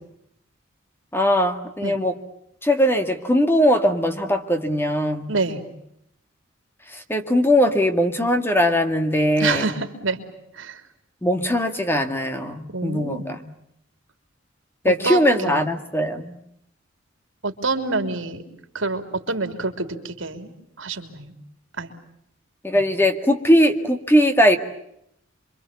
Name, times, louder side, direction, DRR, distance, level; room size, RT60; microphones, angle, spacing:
voice 1, 1.1-2.2 2.6-5.3 6.9-9.8 11.2-13.5 14.8-16.4 22.6-24.6, equal, 10° left, 7 dB, 2.0 m, -20 dB
voice 2, 5.3-5.6 9.4-10.2 10.6-10.8 12.7-13.3 14.8-15.7 17.4-18.4 18.7-20.5 20.8-21.3 21.8-21.9 22.7-22.8, right 3 dB, 70° right, 7 dB, 3.3 m, -27 dB
28.0 x 24.5 x 8.5 m, 0.76 s
head